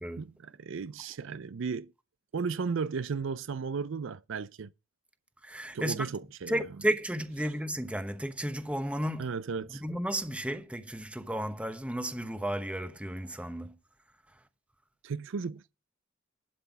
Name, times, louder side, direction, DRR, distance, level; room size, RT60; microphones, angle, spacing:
voice 1, 0.2-1.9 2.3-4.7 5.7-6.6 9.2-9.8 15.0-15.8, right 5 dB, 65° right, 0.4 m, -35 dB
voice 2, 5.4-6.1 6.5-9.3 9.8-13.7, right 1 dB, 5° right, 1.0 m, -33 dB
12.0 x 5.7 x 5.9 m
head